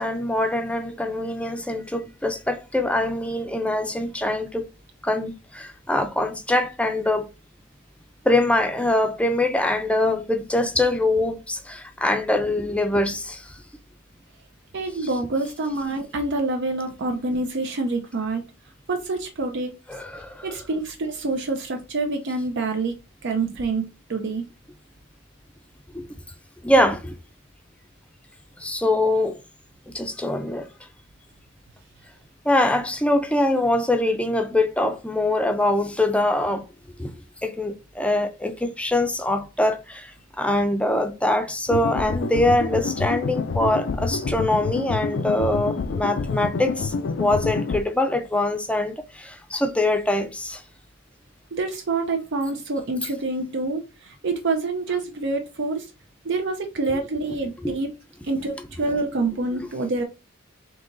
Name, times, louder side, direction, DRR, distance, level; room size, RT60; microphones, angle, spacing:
voice 1, 0.0-4.6 5.0-7.3 8.3-13.4 19.9-20.5 25.9-26.1 26.6-27.2 28.6-29.4 29.9-30.7 32.5-36.6 37.0-37.1 37.4-40.1 40.4-46.9 47.2-50.6 57.6-57.8, left 1 dB, 5° left, 0.5 m, -23 dB
voice 2, 14.7-18.4 18.9-19.7 20.4-22.9 23.2-24.5 51.5-55.9 56.2-57.9 58.3-60.0, right 3 dB, 60° right, 0.6 m, -27 dB
sound 1, 41.7-47.8, left 4 dB, 60° left, 0.4 m, -27 dB
3.9 x 2.9 x 3.8 m
head